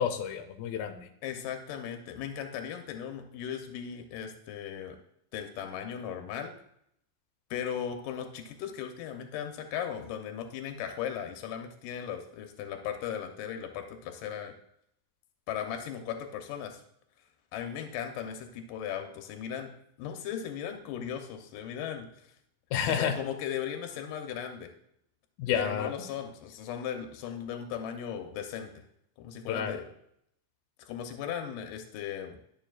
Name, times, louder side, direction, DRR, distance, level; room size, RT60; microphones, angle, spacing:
voice 1, 0.0-1.1 22.7-23.2 25.4-25.9 29.5-29.7, left 8 dB, 90° left, 6 dB, 2.5 m, -30 dB
voice 2, 1.2-5.0 5.3-6.5 7.5-14.5 15.5-16.8 17.5-19.7 20.0-22.1 22.8-24.7 25.5-28.7 29.2-29.9 30.8-32.4, left 9 dB, 75° left, 5 dB, 2.4 m, -37 dB
11.5 x 7.1 x 2.4 m, 0.72 s
omnidirectional pair, 4.1 m